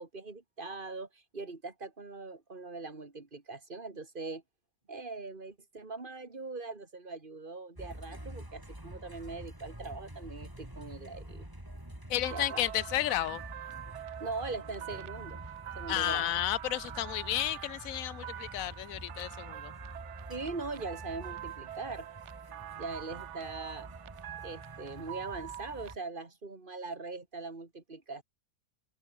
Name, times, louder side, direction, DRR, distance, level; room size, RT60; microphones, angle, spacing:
voice 1, 0.0-4.4 4.9-11.5 12.3-12.6 14.2-15.4 15.7-16.4 20.3-22.1 22.8-23.9 24.4-28.2, right 3 dB, 40° right, 3.0 m, -41 dB
sound 1, 7.7-26.0, right 1 dB, 15° right, 4.8 m, -47 dB
voice 2, 12.1-13.4 15.9-19.7, left 13 dB, 80° left, 1.1 m, -32 dB
sound 2, 12.2-25.9, right 12 dB, 65° right, 0.9 m, -45 dB
omnidirectional pair, 1.4 m